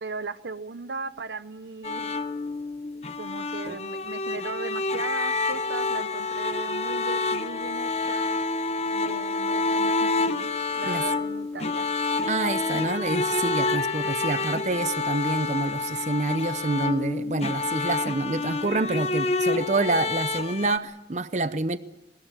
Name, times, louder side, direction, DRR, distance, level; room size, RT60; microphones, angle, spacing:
voice 1, 0.0-2.2 3.2-8.4 8.9-10.5 10.7-11.9, right 4 dB, 75° right, 0.8 m, -37 dB
sound 1, 1.8-20.8, left 3 dB, 35° left, 0.9 m, -28 dB
voice 2, 12.2-21.8, right 2 dB, 40° right, 0.8 m, -27 dB
Piano, 13.7-15.0, left 14 dB, 75° left, 2.6 m, -38 dB
21.0 x 20.0 x 9.0 m
head